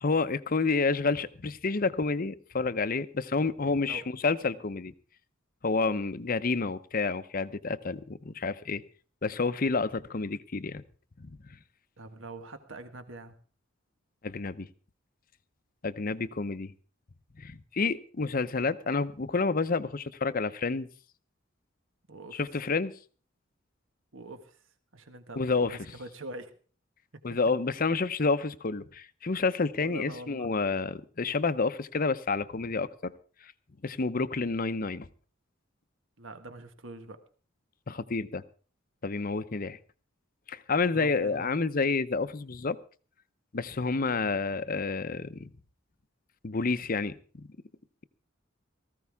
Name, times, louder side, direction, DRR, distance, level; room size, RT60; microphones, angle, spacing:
voice 1, 0.0-4.9 5.6-8.8 9.2-10.8 14.2-14.7 15.8-16.7 17.4-20.9 22.3-22.9 25.4-25.8 27.2-33.1 33.8-35.1 37.9-38.4 39.0-39.8 40.5-42.8 43.5-45.5 46.4-47.5, left 4 dB, 45° left, 13 dB, 0.7 m, -29 dB
voice 2, 12.0-13.3 22.1-22.4 24.1-24.6 24.9-26.5 29.8-30.8 36.2-37.2 40.9-41.6 44.1-44.4, right 2 dB, 70° right, 8 dB, 1.5 m, -44 dB
18.0 x 14.5 x 3.5 m, 0.40 s
head